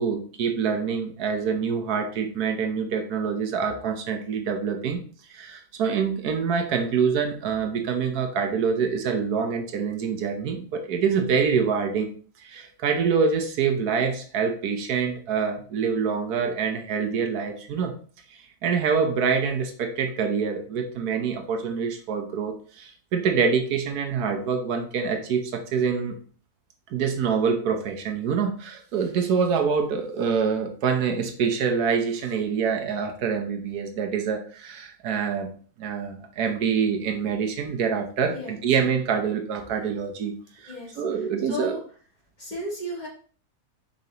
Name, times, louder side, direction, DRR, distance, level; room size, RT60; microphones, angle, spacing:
voice 1, 0.0-5.0 5.3-12.1 12.4-17.9 18.6-26.2 26.9-35.5 35.8-40.3 40.6-41.8, right 6 dB, 85° right, 5 dB, 1.4 m, -26 dB
voice 2, 38.3-38.6 40.7-41.8 42.4-43.1, equal, 30° left, -2 dB, 1.8 m, -35 dB
7.2 x 5.3 x 2.9 m, 0.43 s
omnidirectional pair, 1.6 m